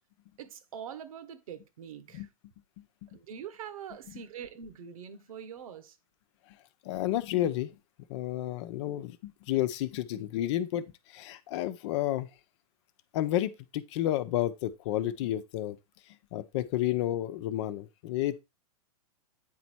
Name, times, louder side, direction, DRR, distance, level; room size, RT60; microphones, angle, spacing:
voice 1, 0.4-2.3 3.1-6.0, right 8 dB, 65° right, 1.6 m, -44 dB
voice 2, 6.8-7.7 8.1-12.3 13.1-15.8 16.3-18.4, left 13 dB, 50° left, 0.9 m, -31 dB
9.2 x 4.2 x 4.6 m
hypercardioid pair, 125°, 19 cm